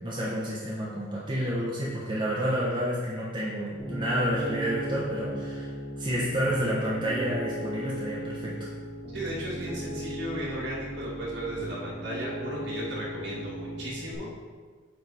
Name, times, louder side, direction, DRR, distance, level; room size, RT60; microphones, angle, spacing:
voice 1, 0.0-8.7, equal, 25° right, -7 dB, 1.1 m, -30 dB
Piano, 3.8-14.1, right 1 dB, 45° left, 2.1 m, -37 dB
voice 2, 9.1-14.3, right 1 dB, 60° right, -5 dB, 2.0 m, -35 dB
9.1 x 4.0 x 4.2 m, 1.5 s
head